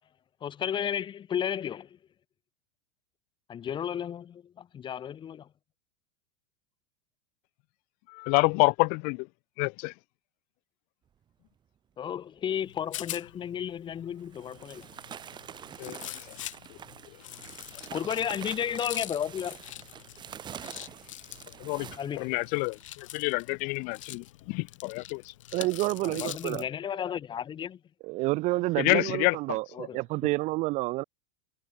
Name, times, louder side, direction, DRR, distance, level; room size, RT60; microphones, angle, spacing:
voice 1, 0.4-1.9 3.5-5.5 12.0-14.9 17.7-19.6 22.0-22.4 26.0-27.8 29.8-30.0, left 9 dB, 30° left, 6.2 m, -33 dB
voice 2, 8.1-9.3 9.6-9.9 15.8-16.4 21.6-25.3 28.8-29.4, left 32 dB, 55° left, 1.8 m, -28 dB
Rattle, 12.5-26.7, left 13 dB, 80° left, 3.8 m, -44 dB
sound 1, 13.4-13.5 14.1-22.8, right 9 dB, 30° right, 2.5 m, -46 dB
voice 3, 25.5-26.6 28.0-31.0, right 21 dB, 45° right, 0.7 m, -29 dB
hypercardioid pair, 115°, 16 cm